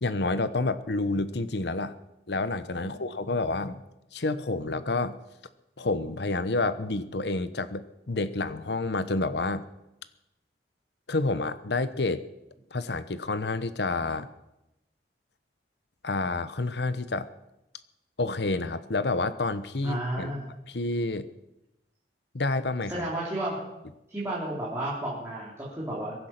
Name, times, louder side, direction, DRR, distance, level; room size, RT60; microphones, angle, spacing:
voice 1, 0.0-2.0 2.3-3.8 4.1-5.2 5.8-9.6 11.1-12.2 12.7-14.3 16.0-17.3 18.2-20.3 20.7-21.3 22.3-23.1, left 2 dB, 70° left, 13 dB, 1.0 m, -29 dB
voice 2, 19.8-20.4 22.9-23.6 24.1-26.3, right 1 dB, 15° right, -7 dB, 3.9 m, -32 dB
23.0 x 10.5 x 5.9 m, 0.92 s
head